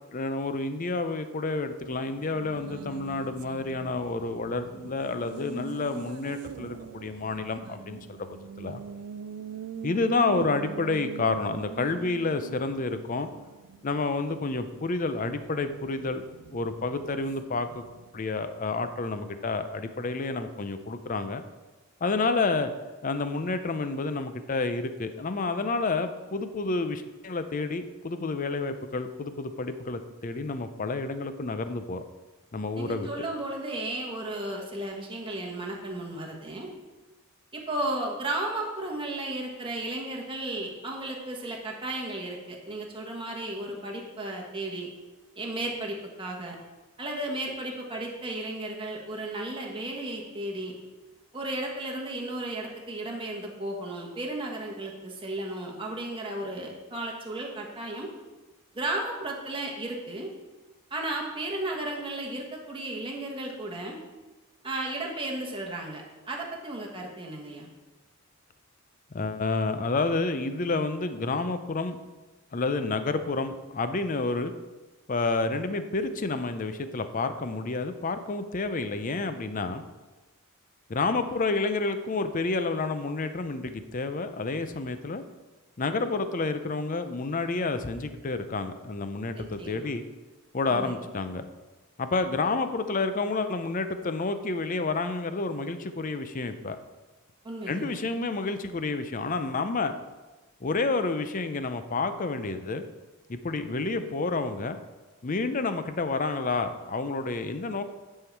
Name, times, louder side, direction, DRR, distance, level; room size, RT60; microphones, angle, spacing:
voice 1, 0.1-8.8 9.8-13.3 13.8-16.2 16.5-17.8 18.1-21.4 22.0-22.7 23.0-32.0 32.5-33.1 69.1-72.0 72.5-74.5 75.1-79.8 80.9-85.2 85.8-90.0 90.5-91.5 92.0-96.8 97.7-99.9 100.6-102.8 103.3-104.8 105.2-107.8, left 3 dB, 40° left, 10 dB, 0.5 m, -29 dB
Race car auto racing, 2.0-18.2, right 6 dB, 90° right, 0.4 m, -43 dB
voice 2, 32.8-36.7 37.5-44.9 45.3-46.6 47.0-50.7 51.3-58.1 58.7-60.3 60.9-64.0 64.6-67.7 89.4-89.9 90.7-91.0 97.4-98.0, right 1 dB, 25° right, -1 dB, 1.4 m, -34 dB
9.9 x 5.6 x 4.6 m, 1.2 s
head